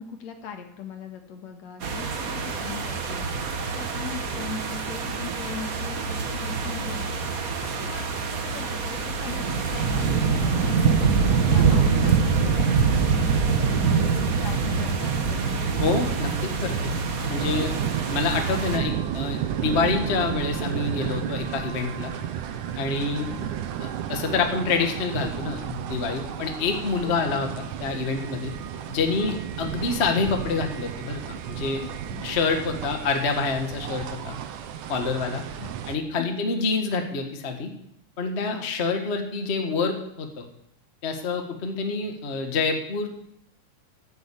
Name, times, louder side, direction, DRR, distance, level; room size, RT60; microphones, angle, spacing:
voice 1, 0.0-7.5 7.8-15.6 23.3-23.5 27.0-27.4 31.8-32.3 35.6-35.8 36.2-36.3 38.5-38.7, left 7 dB, 65° left, 5 dB, 2.6 m, -40 dB
sound 1, 1.8-18.8, right 5 dB, 70° right, 0.8 m, -25 dB
voice 2, 15.8-16.9 17.3-17.7 18.1-22.1 22.8-23.3 23.8-28.5 28.9-31.2 31.5-31.8 32.2-34.4 34.9-35.4 35.9-37.7 38.2-40.4 41.0-43.1, left 4 dB, 30° left, 4 dB, 1.3 m, -27 dB
sound 2, 17.4-36.0, right 9 dB, 85° right, 2.5 m, -33 dB
14.5 x 7.9 x 8.6 m, 0.75 s
omnidirectional pair, 3.5 m